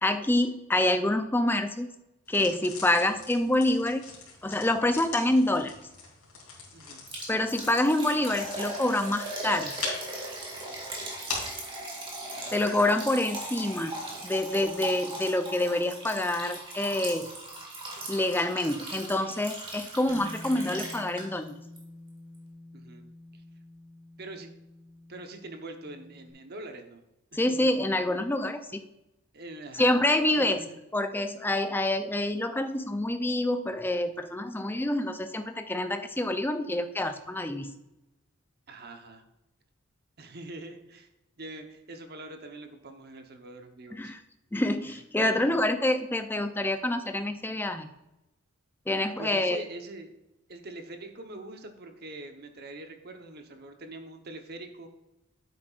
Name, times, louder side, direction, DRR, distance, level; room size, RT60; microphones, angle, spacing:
voice 1, 0.0-1.9 2.3-4.1 4.4-5.7 7.3-9.8 12.5-14.0 14.2-17.3 18.1-21.6 27.3-28.9 29.7-30.6 30.9-37.8 43.9-44.2 44.5-47.9 48.9-49.6, left 1 dB, 10° left, 8 dB, 0.4 m, -27 dB
sound 1, 2.3-11.6, left 4 dB, 80° left, 3.1 m, -42 dB
Liquid, 7.1-21.5 21.8-21.9 22.3-22.4, right 1 dB, 25° right, 1.9 m, -39 dB
voice 2, 12.3-12.7 22.7-23.0 23.3-23.4 24.2-24.5 25.1-27.0 27.3-27.9 29.3-29.9 30.4-30.8 38.7-39.2 40.2-41.1 41.4-44.1 44.9-45.0 45.3-45.6 49.2-50.1 50.5-54.9, right 2 dB, 45° right, 6 dB, 0.9 m, -43 dB
Bass guitar, 20.1-26.3, left 1 dB, 35° left, 1.1 m, -48 dB
9.5 x 7.9 x 2.4 m, 0.93 s
head